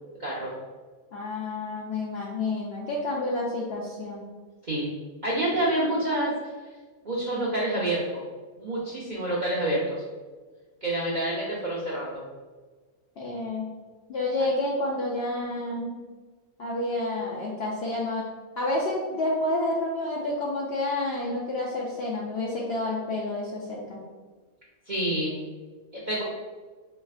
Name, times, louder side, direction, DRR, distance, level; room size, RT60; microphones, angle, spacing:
voice 1, 0.2-0.5 4.6-4.9 5.2-6.3 7.0-8.2 8.6-10.0 10.8-12.2 24.9-25.3 25.9-26.2, right 1 dB, 50° right, -6 dB, 0.5 m, -27 dB
voice 2, 1.1-4.2 13.2-13.7 14.1-16.0 16.6-18.2 18.6-24.0, left 2 dB, 65° left, -3 dB, 0.6 m, -29 dB
4.4 x 3.2 x 2.4 m, 1.4 s
omnidirectional pair, 1.5 m